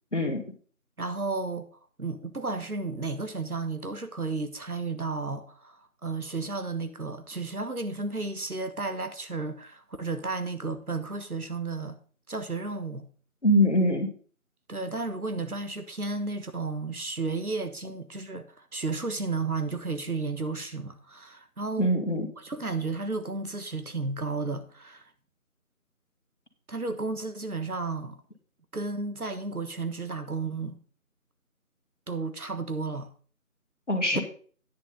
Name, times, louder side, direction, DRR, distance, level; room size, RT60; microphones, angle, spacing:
voice 1, 0.1-0.4 13.4-14.1 21.8-22.3 33.9-34.2, equal, 55° left, 1.9 m, -23 dB
voice 2, 1.0-1.7 2.0-12.0 12.3-13.1 14.7-21.9 22.4-25.0 26.7-28.2 28.7-30.8 32.1-33.1 34.1-34.2, right 3 dB, 75° right, 1.4 m, -33 dB
9.6 x 6.1 x 5.3 m
figure-of-eight pair, 170°, 44 cm